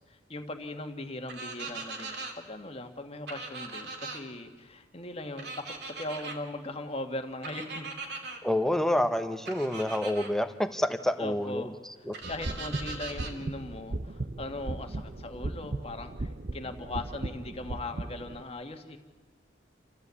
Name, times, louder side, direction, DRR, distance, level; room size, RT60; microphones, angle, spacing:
voice 1, 0.1-5.5 6.0-7.9 11.2-11.7 12.3-19.0, left 2 dB, 35° left, 6 dB, 1.6 m, -39 dB
sound 1, 1.3-2.3 3.3-4.2 5.4-6.4 7.4-8.4 9.4-10.3 12.1-13.3, right 3 dB, 65° right, 2.7 m, -40 dB
voice 2, 8.4-11.7 12.1-12.2, left 1 dB, ahead, 9 dB, 1.0 m, -28 dB
sound 2, 12.2-18.4, right 2 dB, 45° right, 0.8 m, -37 dB
29.0 x 14.0 x 8.3 m, 1.4 s
head